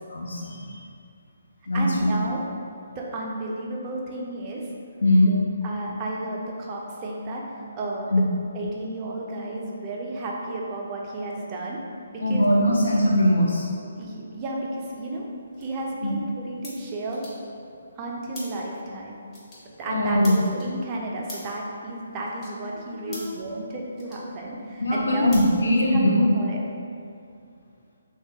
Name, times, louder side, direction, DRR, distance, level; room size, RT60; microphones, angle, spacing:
voice 1, 0.1-0.8 1.7-2.1 5.0-5.4 8.1-8.2 12.2-13.7 16.0-16.1 19.9-20.4 23.1-23.4 24.8-26.4, left 1 dB, 70° left, -4 dB, 0.3 m, -21 dB
voice 2, 1.7-2.4 3.0-4.7 5.6-8.3 8.5-11.8 12.1-12.8 13.9-15.3 15.6-17.2 18.0-19.2 19.8-25.4 25.9-26.6, right 2 dB, 25° right, -2 dB, 0.4 m, -32 dB
sound 1, 14.8-26.3, left 1 dB, 20° left, 0.7 m, -47 dB
3.2 x 2.3 x 2.7 m, 2.4 s
figure-of-eight pair, 140°, 0 cm